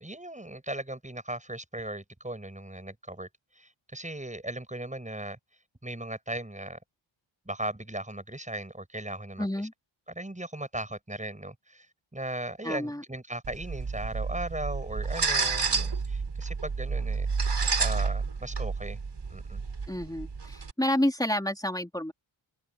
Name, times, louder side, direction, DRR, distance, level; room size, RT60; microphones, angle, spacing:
voice 1, 0.0-3.3 3.5-5.4 5.8-6.8 7.5-9.5 10.2-11.9 12.1-19.0 19.3-19.6, right 1 dB, 15° right, 7.6 m, -37 dB
voice 2, 9.4-9.7 12.6-13.0 19.9-22.1, left 1 dB, 5° left, 3.6 m, -29 dB
sound 1, 13.4-20.7, right 4 dB, 55° right, 7.2 m, -30 dB
open air
wide cardioid pair, 105°, 50 cm